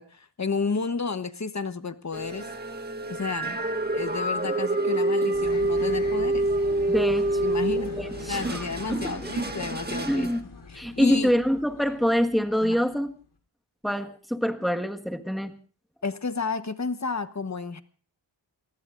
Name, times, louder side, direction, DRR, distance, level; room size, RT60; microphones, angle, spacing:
voice 1, 0.0-2.5 3.1-3.6 3.9-6.5 7.4-8.0 8.3-10.3 10.7-11.3 12.6-12.8 16.0-17.8, left 4 dB, 35° left, 10 dB, 1.1 m, -31 dB
sound 1, 2.1-10.4, right 2 dB, 20° right, 1.7 m, -27 dB
sound 2, 5.3-13.1, left 4 dB, 55° left, 3.6 m, -42 dB
voice 2, 6.9-7.4 8.0-9.3 10.1-10.4 10.7-13.1 13.8-15.5, equal, ahead, 5 dB, 1.5 m, -26 dB
28.0 x 19.5 x 2.6 m, 0.41 s
wide cardioid pair, 100°, 47 cm